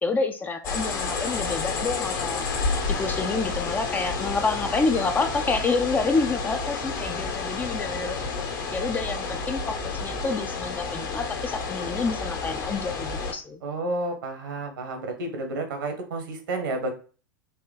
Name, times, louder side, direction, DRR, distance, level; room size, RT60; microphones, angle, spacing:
voice 1, 0.0-2.5 2.9-8.2 8.7-13.6, left 4 dB, 15° left, 6 dB, 0.6 m, -28 dB
sound 1, 0.6-13.3, left 4 dB, 60° left, 1.5 m, -30 dB
voice 2, 13.6-16.9, right 2 dB, 65° right, 5 dB, 1.3 m, -31 dB
4.3 x 3.0 x 3.7 m, 0.38 s
figure-of-eight pair, 95°, 11 cm